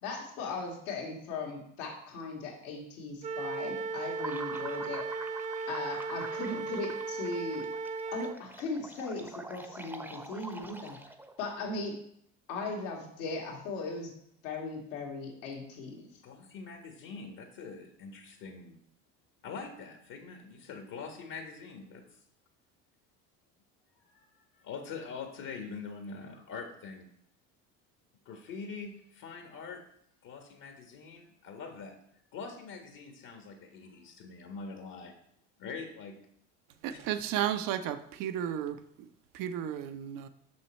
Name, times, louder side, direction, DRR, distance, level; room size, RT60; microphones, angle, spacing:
voice 1, 0.0-5.1 5.7-7.6 8.1-11.0 11.4-12.0 12.5-14.1 14.4-16.0, left 3 dB, 75° left, 0 dB, 2.0 m, -38 dB
Wind instrument woodwind instrument, 3.2-8.4, right 4 dB, 20° right, 0.4 m, -36 dB
sound 1, 4.2-11.4, right 1 dB, 5° right, 0.8 m, -45 dB
voice 2, 16.2-18.8 19.4-22.0 24.0-24.3 24.5-27.1 28.2-29.8 30.2-32.0 32.3-35.1 35.6-36.1 36.9-37.0, left 5 dB, 55° left, 4 dB, 1.5 m, -44 dB
voice 3, 36.8-38.8 39.3-40.3, right 10 dB, 60° right, 11 dB, 0.8 m, -33 dB
6.4 x 6.0 x 4.3 m, 0.70 s
hypercardioid pair, 70°, 38 cm